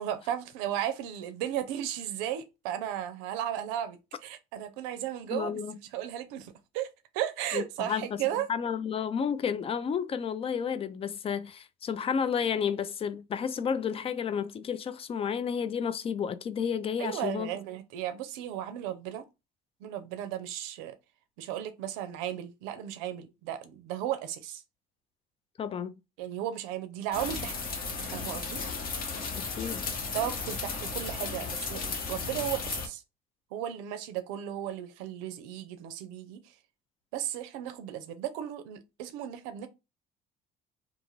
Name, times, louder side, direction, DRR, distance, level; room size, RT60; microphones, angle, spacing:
voice 1, 0.0-5.6 5.9-6.9 7.1-8.5 17.0-19.3 19.8-20.9 21.4-24.6 26.2-27.6 28.0-28.6 30.1-31.8 32.1-33.0 33.5-36.5 37.1-39.7, right 11 dB, 90° right, 0.5 m, -35 dB
voice 2, 5.3-5.7 7.5-8.2 8.5-17.5 25.6-25.9 29.3-29.9, left 7 dB, 35° left, 0.4 m, -31 dB
sound 1, 27.1-32.9, left 4 dB, 55° left, 1.0 m, -35 dB
2.5 x 2.5 x 3.1 m
supercardioid pair, 85°, 18 cm